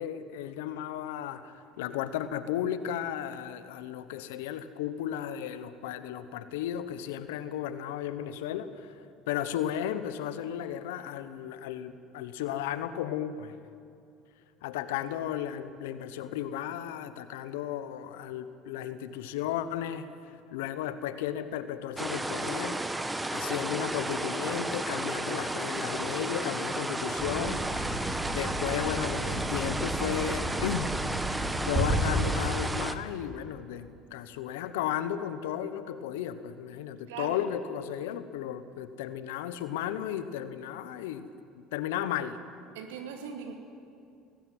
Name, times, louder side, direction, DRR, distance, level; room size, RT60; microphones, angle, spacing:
voice 1, 0.0-9.0 9.3-13.6 14.6-22.8 23.3-31.0 31.6-41.3 41.7-42.4, left 10 dB, 85° left, 12 dB, 1.1 m, -34 dB
sound 1, 22.0-32.9, right 2 dB, 10° right, 1.2 m, -33 dB
sound 2, 27.2-32.4, right 1 dB, 30° right, 4.3 m, -32 dB
voice 2, 37.1-37.4 42.7-43.5, right 7 dB, 85° right, 4 dB, 2.5 m, -39 dB
18.0 x 15.5 x 9.5 m, 2.4 s
supercardioid pair, 85°, 0 cm